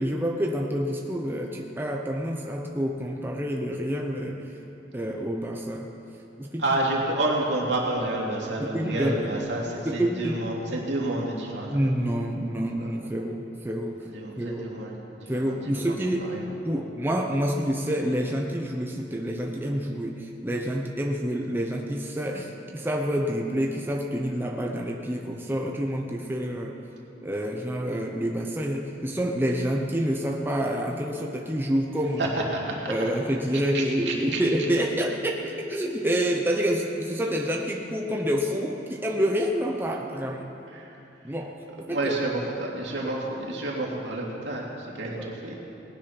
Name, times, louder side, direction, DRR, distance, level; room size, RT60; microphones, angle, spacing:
voice 1, 0.0-4.5 4.9-5.9 6.4-6.7 8.6-9.4 9.9-10.4 11.6-14.0 14.4-14.7 15.3-16.3 16.6-26.8 27.2-32.3 32.9-40.5 41.2-42.1 43.0-43.1 45.2-45.3, equal, 10° right, 0 dB, 0.8 m, -28 dB
voice 2, 6.6-11.9 12.8-12.9 14.1-15.0 15.3-15.5 15.9-16.0 16.3-16.4 32.2-32.9 33.7-34.4 40.7-40.9 41.9-45.6, right 2 dB, 70° right, -3 dB, 2.7 m, -29 dB
18.5 x 10.0 x 5.9 m, 2.9 s
head